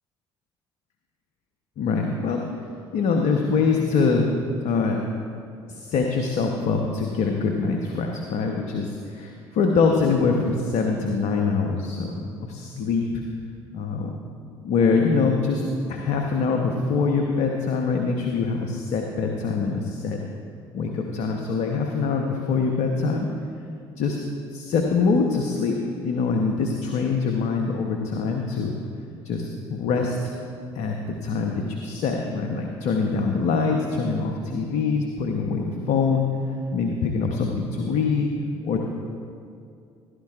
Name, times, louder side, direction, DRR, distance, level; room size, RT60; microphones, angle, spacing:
voice 1, 1.8-2.4 2.9-4.3 4.6-5.0 5.7-13.0 13.7-14.2 14.6-15.6 15.9-20.2 20.7-23.3 24.0-24.2 24.5-25.8 26.0-28.8 29.2-30.3 30.7-36.3 36.7-38.3 38.6-38.9, left 4 dB, 65° left, 2 dB, 1.0 m, -24 dB
16.0 x 11.5 x 2.5 m, 2.4 s
hypercardioid pair, 60°, 13 cm